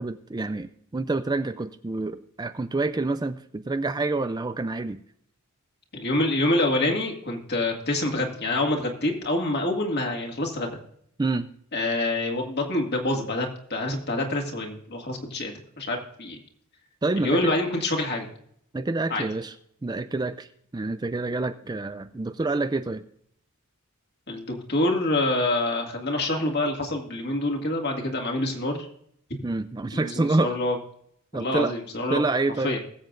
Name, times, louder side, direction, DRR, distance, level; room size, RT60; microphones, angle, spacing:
voice 1, 0.0-5.0 11.2-11.5 17.0-17.5 18.7-19.5 19.8-20.5 20.7-23.0 29.4-30.5 31.3-31.7 32.1-32.8, right 2 dB, 20° right, 10 dB, 0.4 m, -27 dB
voice 2, 5.9-10.8 11.7-16.4 17.2-18.3 19.1-19.2 24.3-28.9 29.3-29.4 29.9-30.8 31.3-32.2 32.6-32.8, left 2 dB, 50° left, 1 dB, 2.2 m, -26 dB
21.0 x 7.7 x 2.5 m, 0.68 s
head